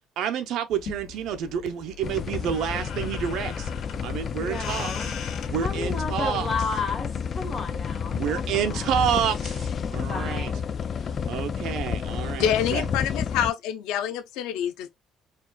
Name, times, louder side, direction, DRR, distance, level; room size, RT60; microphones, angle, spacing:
voice 1, 0.2-3.7 4.0-4.9 5.5-6.5 8.1-10.5 11.0-12.8, right 9 dB, 65° right, 0.8 m, -29 dB
sound 1, 0.7-6.0, left 6 dB, 60° left, 1.6 m, -40 dB
sound 2, 2.0-13.5, left 7 dB, 35° left, 0.3 m, -30 dB
voice 2, 4.4-5.1 5.6-8.9 10.1-10.6, left 3 dB, 15° left, 1.4 m, -33 dB
voice 3, 12.4-14.9, left 10 dB, 90° left, 0.7 m, -26 dB
4.2 x 2.5 x 2.2 m
cardioid pair, 140°, 0 cm